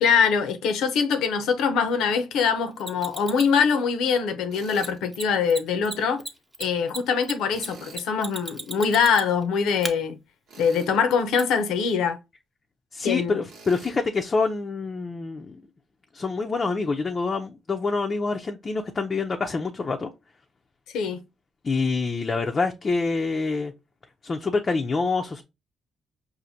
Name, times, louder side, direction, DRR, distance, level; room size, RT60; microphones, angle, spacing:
voice 1, 0.0-6.2 6.6-10.2 10.6-12.2 13.0-13.4 20.9-21.2, left 6 dB, 85° left, 0.6 m, -23 dB
Mechanisms, 2.8-3.6 4.8-4.9 5.1-5.2 5.5-5.6 5.8-9.4 9.8-9.9 11.4-11.5, right 1 dB, 15° right, 0.7 m, -35 dB
Tools, 4.5-5.0 7.5-8.1 10.5-11.0 13.5-13.9, right 4 dB, 85° right, 1.1 m, -47 dB
voice 2, 12.9-15.6 16.1-20.1 21.6-23.7 24.2-25.4, left 4 dB, 35° left, 0.4 m, -26 dB
4.9 x 2.5 x 2.7 m
cardioid pair, 90°, 0 cm